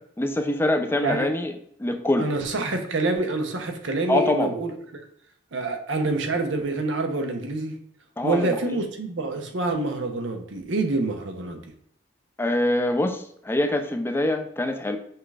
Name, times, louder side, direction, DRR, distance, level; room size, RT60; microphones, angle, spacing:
voice 1, 0.2-1.5 1.8-2.3 4.1-4.5 8.2-8.8 12.4-15.0, left 1 dB, 10° left, 6 dB, 0.3 m, -24 dB
voice 2, 2.2-4.7 5.5-7.7 8.2-11.6, right 2 dB, 85° right, 5 dB, 0.8 m, -26 dB
5.7 x 2.4 x 3.3 m, 0.69 s
head